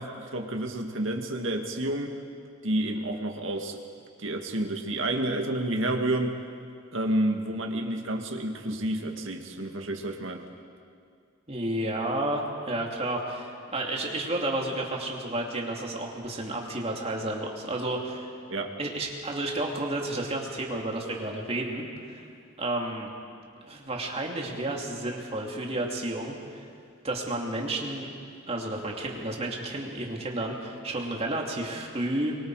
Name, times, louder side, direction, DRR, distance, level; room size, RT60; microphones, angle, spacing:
voice 1, 0.0-2.2 2.6-3.8 4.2-6.4 6.9-10.5 18.5-18.7, right 1 dB, 65° right, 3 dB, 2.0 m, -30 dB
voice 2, 11.5-18.3 18.8-22.2 22.6-23.1 23.6-26.7 27.0-28.1 28.5-32.4, right 1 dB, 30° right, 0 dB, 2.7 m, -31 dB
26.0 x 23.0 x 4.9 m, 2.3 s
head